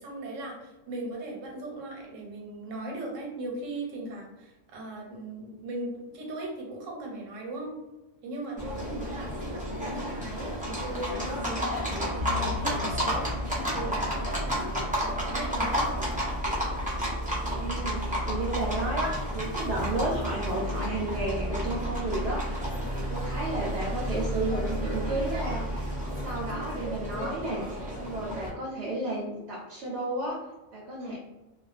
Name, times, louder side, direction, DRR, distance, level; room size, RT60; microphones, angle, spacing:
voice 1, 0.0-7.7 8.2-16.0 30.9-31.2, right 2 dB, 85° right, -1 dB, 1.1 m, -38 dB
Livestock farm animals working animals, 8.6-28.5, equal, 10° right, 0.3 m, -31 dB
sound 1, 12.2-14.7, left 7 dB, 55° left, 0.6 m, -39 dB
voice 2, 17.6-30.4 30.7-31.2, right 2 dB, 65° right, -3 dB, 0.8 m, -33 dB
2.3 x 2.2 x 2.3 m, 1.0 s
omnidirectional pair, 1.3 m